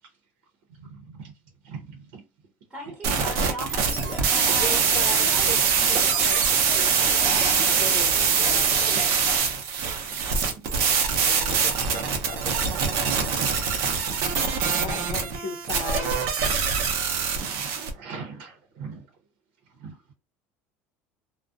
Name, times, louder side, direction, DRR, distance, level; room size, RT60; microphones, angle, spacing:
voice 1, 0.8-1.3 1.6-2.2 2.9-3.0 3.3-3.4 4.4-4.6 5.9-6.2 6.5-6.8 7.5-7.7 8.9-9.1 10.1-10.2 10.6-10.7 11.0-11.1 11.6-11.7 13.7-14.3 16.7-16.8 17.4-19.1 19.8-19.9, right 5 dB, 90° right, 0.8 m, -40 dB
voice 2, 2.7-4.8, right 1 dB, 15° right, 0.8 m, -37 dB
sound 1, 3.0-17.9, right 6 dB, 55° right, 0.6 m, -23 dB
sound 2, 3.7-9.4, left 1 dB, 10° left, 0.5 m, -39 dB
voice 3, 4.5-6.4 7.6-9.1 11.2-12.7 14.8-16.3, left 4 dB, 55° left, 0.6 m, -37 dB
2.4 x 2.1 x 2.5 m
cardioid pair, 160°, 6 cm